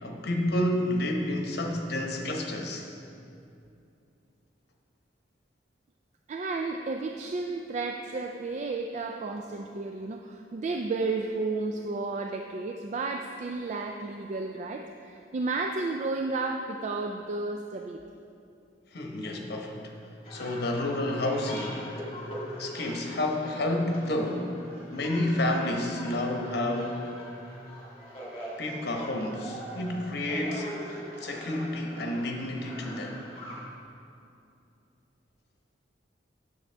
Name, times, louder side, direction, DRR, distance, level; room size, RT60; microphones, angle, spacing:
voice 1, 0.0-2.9 18.9-19.9 20.3-22.1 22.6-24.6 24.9-27.0 28.6-33.2, left 1 dB, 65° left, 2 dB, 0.9 m, -30 dB
voice 2, 6.3-18.0, right 3 dB, 40° right, 3 dB, 0.3 m, -32 dB
sound 1, 20.2-33.6, equal, 35° left, 1.9 m, -42 dB
9.6 x 7.1 x 3.4 m, 2.6 s
head